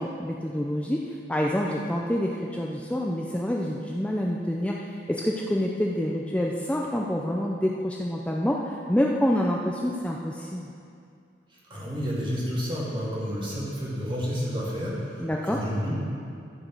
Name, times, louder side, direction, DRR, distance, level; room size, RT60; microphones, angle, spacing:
voice 1, 0.0-10.7 15.2-15.6, equal, 5° left, -1 dB, 0.5 m, -27 dB
voice 2, 11.5-15.9, equal, 30° right, -6 dB, 2.3 m, -30 dB
13.5 x 5.1 x 6.2 m, 2.4 s
head